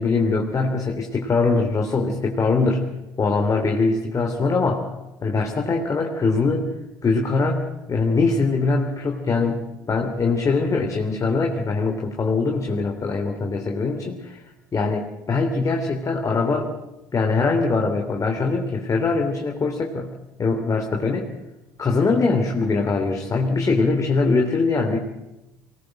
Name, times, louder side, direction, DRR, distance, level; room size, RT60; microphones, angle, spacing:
voice 1, 0.0-2.9 3.2-4.9 5.2-6.7 7.0-14.4 14.7-16.7 17.1-20.1 20.4-21.3 21.8-25.0, left 3 dB, 30° left, 2 dB, 3.2 m, -22 dB
24.0 x 19.0 x 7.7 m, 0.97 s
hypercardioid pair, 65°, 11 cm